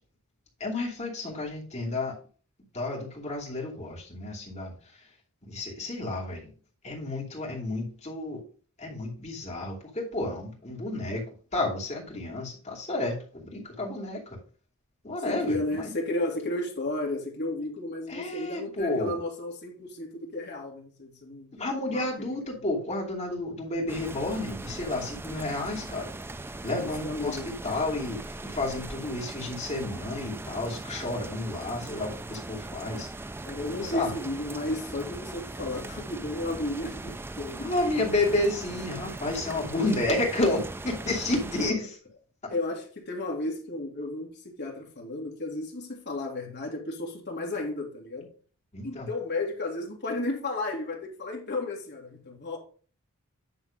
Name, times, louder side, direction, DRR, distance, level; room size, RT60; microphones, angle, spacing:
voice 1, 0.6-2.1 2.7-4.7 5.4-6.5 6.8-8.4 8.8-14.4 15.0-15.9 18.1-19.2 21.5-26.1 26.6-33.1 33.8-34.1 37.6-41.9 42.4-42.5 48.7-49.1, left 2 dB, 30° left, 2.7 m, -31 dB
voice 2, 15.2-21.5 21.9-22.3 26.8-27.5 33.5-37.7 41.6-41.8 42.5-48.3 48.8-52.6, left 2 dB, 50° left, 2.2 m, -33 dB
sound 1, 23.9-41.7, right 2 dB, 10° right, 0.3 m, -39 dB
9.8 x 3.6 x 5.1 m
head